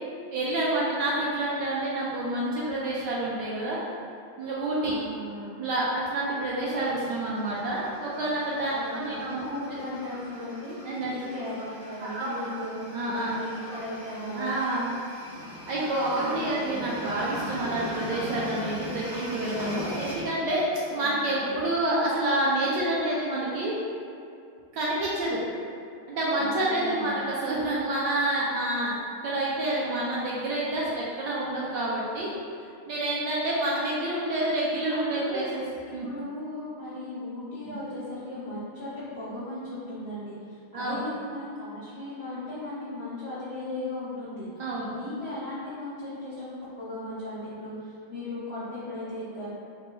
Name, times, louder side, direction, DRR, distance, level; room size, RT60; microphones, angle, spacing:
voice 1, 0.3-3.8 4.4-4.9 5.6-9.4 10.8-11.1 12.0-12.6 12.9-13.4 14.3-14.9 15.7-20.6 20.9-23.8 24.7-25.4 26.1-28.9 29.2-32.3 32.9-35.6 35.9-36.1 37.7-37.8 40.7-41.0 44.6-44.9, right 1 dB, 75° right, -6 dB, 1.0 m, -28 dB
voice 2, 4.8-5.6 8.7-10.7 11.1-14.6 16.1-16.9 20.9-21.6 26.4-27.3 34.9-35.6 35.8-44.5 44.9-49.5, left 1 dB, 90° left, -10 dB, 0.5 m, -37 dB
sound 1, 6.6-20.2, left 1 dB, 30° left, 0.4 m, -40 dB
4.2 x 2.2 x 4.1 m, 2.5 s
omnidirectional pair, 2.3 m